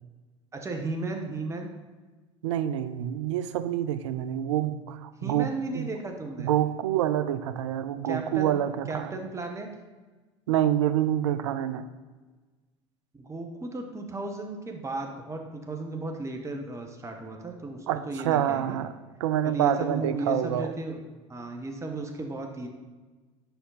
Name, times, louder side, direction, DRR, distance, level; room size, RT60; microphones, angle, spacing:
voice 1, 0.5-1.7 5.2-6.5 8.0-8.6 8.9-9.7 13.2-18.8 19.4-21.0 21.3-22.7, right 2 dB, 20° right, 3 dB, 1.1 m, -35 dB
voice 2, 2.4-5.9 6.4-9.2 10.5-11.9 17.9-18.9 19.2-20.7, right 11 dB, 70° right, 12 dB, 0.5 m, -27 dB
8.0 x 5.6 x 4.0 m, 1.3 s
figure-of-eight pair, 70°, 16 cm